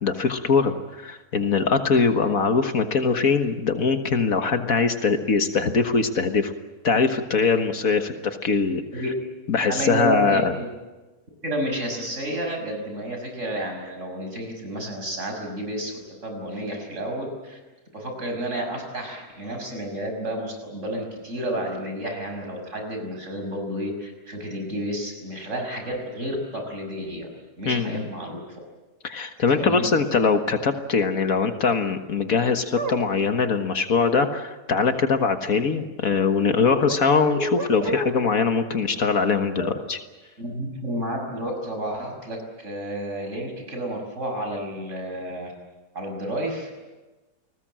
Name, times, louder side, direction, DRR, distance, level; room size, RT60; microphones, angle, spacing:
voice 1, 0.0-6.5 6.8-8.8 9.5-10.5 27.7-28.1 29.0-40.0, left 5 dB, 65° left, 7 dB, 1.8 m, -22 dB
voice 2, 9.7-10.7 11.4-17.6 17.9-27.3 27.6-28.4 29.5-29.9 37.8-37.9 39.6-39.7 40.4-45.5 45.9-46.7, right 1 dB, 50° right, 3 dB, 6.4 m, -31 dB
sound 1, 32.8-33.0 34.2-34.3 36.4-37.0 37.3-38.3, right 1 dB, 80° right, 2.4 m, -30 dB
30.0 x 20.0 x 7.6 m, 1.2 s
omnidirectional pair, 1.7 m